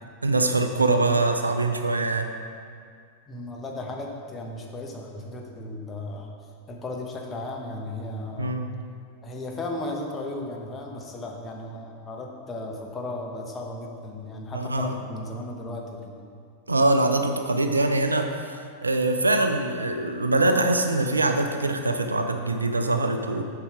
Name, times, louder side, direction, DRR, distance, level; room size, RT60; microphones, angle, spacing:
voice 1, 0.2-2.3 8.4-8.7 14.5-15.0 16.7-23.4, right 2 dB, 80° right, 6 dB, 0.5 m, -23 dB
voice 2, 3.3-6.3 6.7-8.6 9.2-16.2, left 2 dB, 20° left, 0 dB, 1.0 m, -35 dB
7.0 x 5.5 x 4.8 m, 2.2 s
figure-of-eight pair, 90°, 0 cm